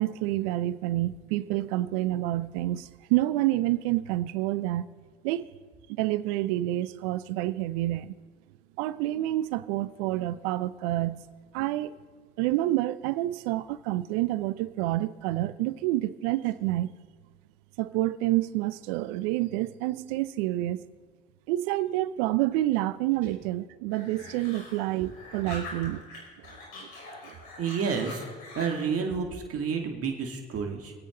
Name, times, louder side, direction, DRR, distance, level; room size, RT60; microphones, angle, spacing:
voice 1, 0.0-4.9 5.2-5.5 5.9-8.2 8.8-11.2 11.5-11.9 12.4-16.9 17.8-20.8 21.5-26.1 26.8-26.9 27.2-27.3, right 15 dB, 75° right, 16 dB, 0.7 m, -28 dB
sound 1, 23.9-26.2 26.4-28.9, left 2 dB, 75° left, 4.9 m, -44 dB
voice 2, 27.6-28.2 28.6-30.9, right 6 dB, 50° right, 3 dB, 2.4 m, -30 dB
25.5 x 8.8 x 3.9 m, 1.5 s
hypercardioid pair, 60°, 30 cm